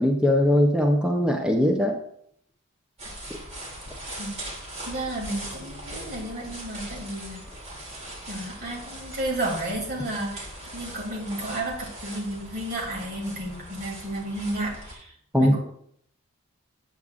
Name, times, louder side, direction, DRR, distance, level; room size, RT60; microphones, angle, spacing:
voice 1, 0.0-2.0 15.3-15.6, left 1 dB, 5° right, 1 dB, 0.6 m, -20 dB
sound 1, 3.0-14.9, right 1 dB, 30° right, 2.7 m, -40 dB
voice 2, 4.9-7.5 8.3-15.6, right 1 dB, 50° right, -3 dB, 2.9 m, -32 dB
8.9 x 8.2 x 2.5 m, 0.68 s
head